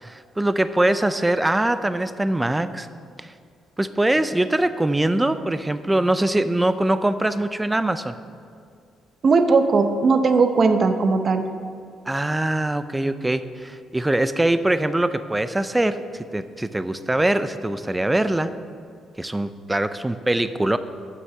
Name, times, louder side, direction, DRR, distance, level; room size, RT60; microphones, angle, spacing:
voice 1, 0.0-2.9 3.2-3.3 3.8-8.1 12.1-18.5 19.2-20.8, right 1 dB, 10° right, 12 dB, 0.4 m, -22 dB
voice 2, 9.2-11.4, right 4 dB, 45° right, 8 dB, 0.7 m, -18 dB
7.8 x 6.3 x 7.1 m, 2.2 s
cardioid pair, 90°, 0 cm